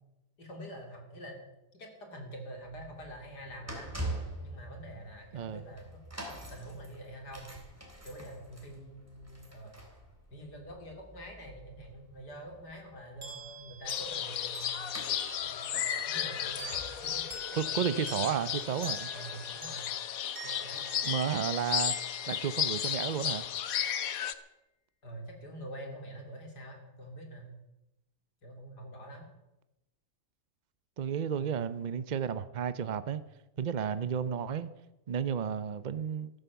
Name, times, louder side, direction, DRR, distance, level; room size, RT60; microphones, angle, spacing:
voice 1, 0.4-1.4 1.7-3.9 4.4-6.0 6.3-7.5 8.0-9.8 10.3-14.9 15.4-18.6 19.1-19.9 20.4-20.8 25.0-27.5 28.4-29.3 31.3-31.6 33.8-34.1, right 1 dB, 80° left, 3.6 m, -46 dB
sound 1, 2.6-19.6 20.2-20.3, right 1 dB, 10° right, 3.3 m, -46 dB
sound 2, 13.2-23.5, equal, 30° right, 4.0 m, -46 dB
sound 3, 13.9-24.3, left 10 dB, 60° left, 1.2 m, -34 dB
voice 2, 17.6-19.1 21.0-21.9 22.3-23.5 31.0-33.2 33.6-34.7 35.1-36.3, right 8 dB, 75° right, 0.4 m, -32 dB
14.0 x 12.5 x 7.0 m
omnidirectional pair, 1.7 m